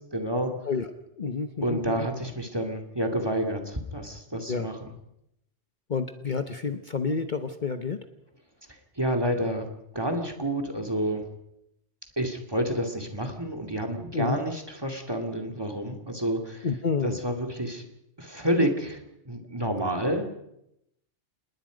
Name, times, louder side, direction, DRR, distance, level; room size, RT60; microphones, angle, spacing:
voice 1, 0.1-0.5 1.6-4.9 8.7-9.7 9.9-11.2 12.2-16.7 17.0-17.9 18.2-20.2, right 1 dB, 20° right, 4 dB, 2.5 m, -29 dB
voice 2, 1.2-2.1 4.5-4.7 5.9-8.0 14.1-14.4 16.6-17.2, left 5 dB, 45° left, 8 dB, 1.1 m, -29 dB
27.0 x 20.5 x 5.2 m, 0.82 s
omnidirectional pair, 1.2 m